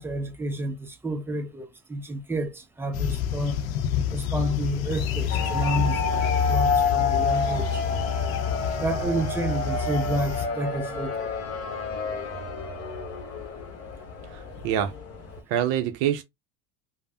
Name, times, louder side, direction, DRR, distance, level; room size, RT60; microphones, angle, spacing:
voice 1, 0.0-3.6 4.1-7.8 8.8-11.3, right 1 dB, 5° right, 0.4 m, -30 dB
sound 1, 2.9-10.5, left 8 dB, 70° left, 0.6 m, -28 dB
sound 2, 5.3-15.4, left 4 dB, 35° left, 0.9 m, -29 dB
voice 2, 14.3-14.9 15.5-16.2, right 10 dB, 55° right, 0.5 m, -26 dB
3.2 x 2.1 x 2.6 m
hypercardioid pair, 85°, 43 cm